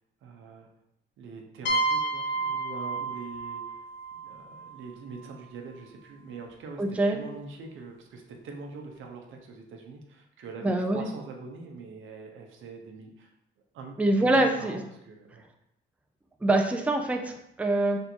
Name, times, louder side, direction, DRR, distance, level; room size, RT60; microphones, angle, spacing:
voice 1, 0.2-0.7 1.2-3.6 4.2-6.8 7.1-13.3 13.7-15.4, right 4 dB, 80° right, 2 dB, 0.8 m, -43 dB
sound 1, 1.7-5.3, right 3 dB, 65° left, 0.7 m, -31 dB
voice 2, 6.8-7.2 10.6-11.0 14.0-14.8 16.4-18.0, right 2 dB, 5° right, 4 dB, 0.4 m, -24 dB
3.5 x 2.7 x 4.3 m, 0.80 s
cardioid pair, 90°, 20 cm